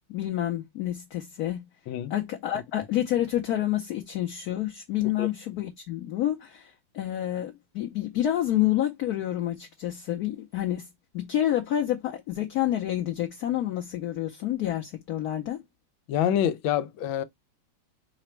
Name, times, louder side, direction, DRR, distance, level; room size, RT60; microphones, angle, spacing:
voice 1, 0.1-1.7 2.1-10.9 11.1-15.6, left 12 dB, 65° left, 1.0 m, -28 dB
voice 2, 16.1-17.2, left 10 dB, 85° left, 1.4 m, -26 dB
5.0 x 2.1 x 4.3 m
omnidirectional pair, 2.1 m